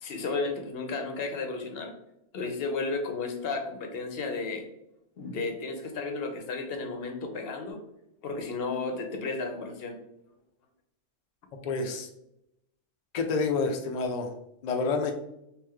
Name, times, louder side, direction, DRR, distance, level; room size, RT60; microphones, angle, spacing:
voice 1, 0.0-1.9 2.3-4.7 5.2-7.8 8.2-10.0, left 3 dB, 55° left, 4 dB, 0.8 m, -33 dB
voice 2, 11.6-12.1 13.1-14.3 14.6-15.1, left 4 dB, 80° left, 5 dB, 0.3 m, -28 dB
3.1 x 2.9 x 3.6 m, 0.81 s
omnidirectional pair, 1.3 m